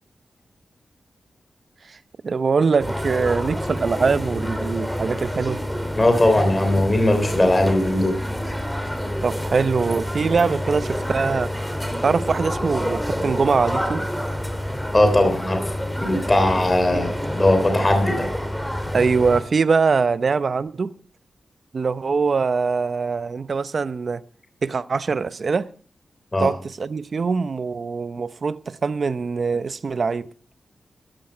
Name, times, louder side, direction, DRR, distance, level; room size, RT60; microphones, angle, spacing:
voice 1, 2.2-5.6 9.2-11.5 12.0-14.1 16.9-17.1 18.9-20.9 21.7-24.2 24.6-25.7 26.4-30.3, right 5 dB, 60° right, 0.7 m, -22 dB
sound 1, 2.8-19.4, equal, ahead, 2.6 m, -28 dB
voice 2, 6.0-8.2 14.9-15.6 16.0-18.3 26.3-26.5, left 1 dB, 25° left, 3.2 m, -19 dB
14.5 x 11.5 x 4.5 m
cardioid pair, 55°, 0 cm